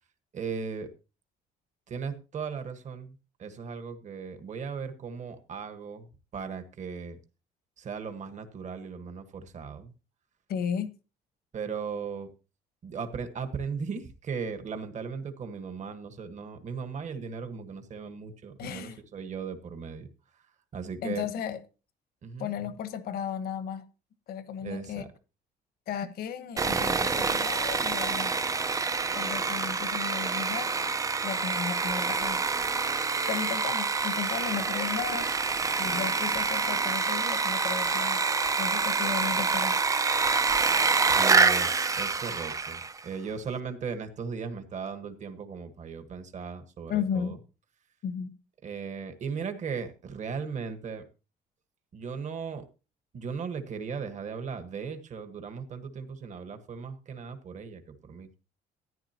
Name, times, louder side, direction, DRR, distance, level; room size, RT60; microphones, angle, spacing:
voice 1, 0.3-0.9 1.9-7.2 7.8-9.9 11.5-12.3 12.8-20.1 20.7-21.3 22.2-22.5 24.6-25.1 41.0-47.4 48.6-51.1 51.9-52.7 53.1-58.3, right 5 dB, 45° right, 1.5 m, -37 dB
voice 2, 10.5-10.9 18.6-19.0 21.0-21.6 22.4-23.8 24.3-25.0 25.9-28.4 29.1-30.7 31.2-32.4 33.3-38.2 38.6-39.8 46.9-47.4 48.0-48.3, left 8 dB, 65° left, 1.2 m, -34 dB
Sawing, 26.6-43.0, right 4 dB, 20° right, 0.5 m, -27 dB
14.0 x 9.9 x 2.9 m
cardioid pair, 110°, 17 cm